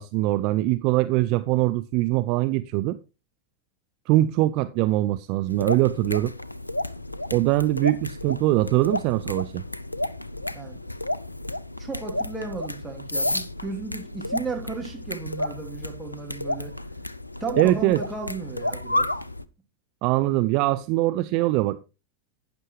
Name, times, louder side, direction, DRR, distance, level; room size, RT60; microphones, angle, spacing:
voice 1, 0.0-3.0 4.1-6.3 7.3-9.6 17.6-18.0 20.0-21.8, right 17 dB, 45° right, 0.5 m, -22 dB
sound 1, 5.5-19.4, left 1 dB, 85° left, 0.5 m, -31 dB
voice 2, 10.5-10.8 11.8-16.7 17.4-19.1, right 4 dB, 10° right, 2.9 m, -35 dB
12.0 x 9.1 x 3.1 m
figure-of-eight pair, 90°, 0 cm